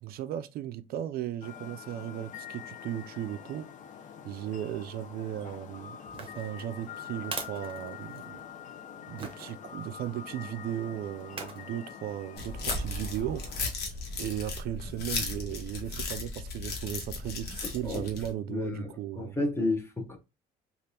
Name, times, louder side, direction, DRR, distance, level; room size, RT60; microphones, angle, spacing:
voice 1, 0.0-3.7 4.2-8.4 9.1-13.9 14.2-19.4, right 11 dB, 65° right, 0.4 m, -36 dB
sound 1, 1.4-13.7, left 8 dB, 50° left, 0.6 m, -45 dB
sound 2, 6.1-8.5 9.2-9.5 11.2-11.7 12.6-13.0 13.5-13.6, right 4 dB, 30° right, 0.8 m, -41 dB
sound 3, 12.4-18.3, left 3 dB, 75° left, 1.1 m, -36 dB
voice 2, 18.5-20.2, left 2 dB, 15° left, 0.8 m, -31 dB
3.3 x 2.4 x 2.7 m
cardioid pair, 110°, 17 cm